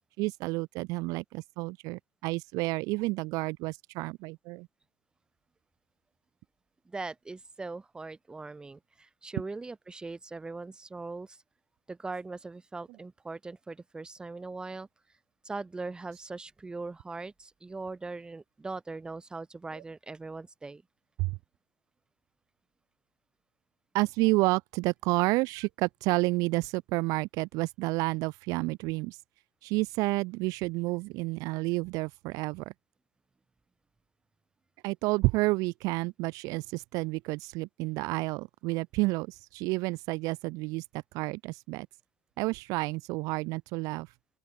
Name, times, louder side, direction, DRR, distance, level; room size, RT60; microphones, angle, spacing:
voice 1, 0.2-4.7 21.2-21.4 23.9-29.2 29.6-32.7 34.8-41.9 42.4-44.1, right 23 dB, 45° right, 0.4 m, -30 dB
voice 2, 6.8-11.4 11.9-15.2 15.4-20.8, right 3 dB, 10° right, 0.7 m, -40 dB
open air
hypercardioid pair, 100°, 8 cm